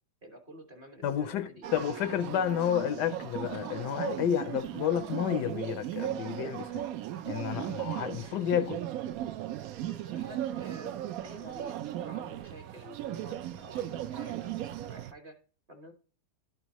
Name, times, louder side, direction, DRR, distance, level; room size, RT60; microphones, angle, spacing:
voice 1, 0.2-1.7 9.8-15.4 15.7-15.9, right 1 dB, 35° right, 1.1 m, -50 dB
voice 2, 1.0-6.8 7.3-8.8, left 9 dB, 75° left, 1.2 m, -31 dB
sound 1, 1.6-15.1, right 12 dB, 70° right, 0.8 m, -37 dB
12.0 x 4.6 x 2.9 m
omnidirectional pair, 1.9 m